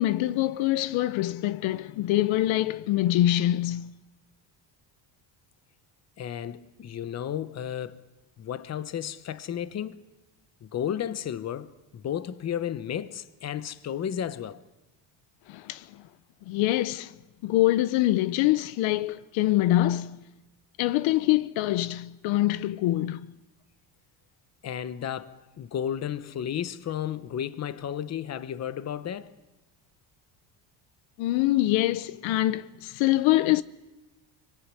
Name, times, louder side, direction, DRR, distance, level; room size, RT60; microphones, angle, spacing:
voice 1, 0.0-3.9 15.5-16.0 16.5-17.1 17.4-20.2 20.8-23.3 31.2-33.6, left 15 dB, 80° left, 0.9 m, -24 dB
voice 2, 6.2-8.1 8.4-10.0 10.6-14.6 24.6-29.4, left 9 dB, 35° left, 1.0 m, -33 dB
25.0 x 24.0 x 9.8 m
cardioid pair, 155°, 46 cm